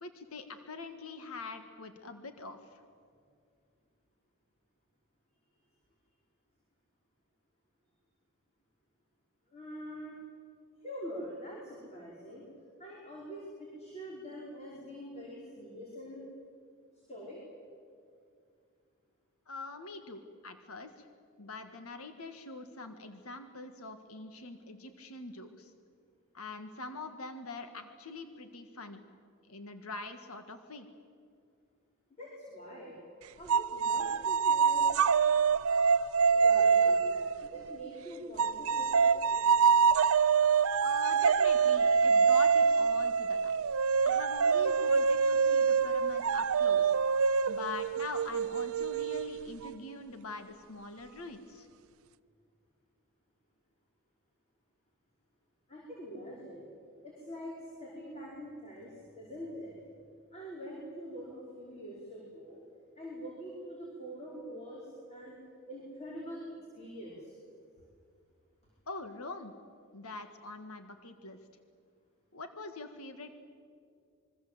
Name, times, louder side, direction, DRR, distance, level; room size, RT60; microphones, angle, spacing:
voice 1, 0.0-2.8 19.5-21.1 21.4-25.7 26.3-29.0 29.5-30.9 40.8-43.6 44.0-46.9 47.5-51.7 68.9-69.5 69.9-71.4 72.3-73.4, left 3 dB, 85° left, 7 dB, 1.7 m, -44 dB
voice 2, 9.5-10.2 10.8-12.4 12.8-16.2 17.1-17.4 32.2-33.0 33.4-35.0 36.3-39.4 55.7-56.6 57.0-57.5 57.8-58.9 59.2-59.7 60.3-62.6 63.0-65.3 65.7-66.4 66.8-67.3, equal, 30° left, -4 dB, 5.5 m, -44 dB
sound 1, 33.5-37.8 38.4-49.7, right 6 dB, 75° right, 0.6 m, -26 dB
26.0 x 23.0 x 8.0 m, 2.3 s
head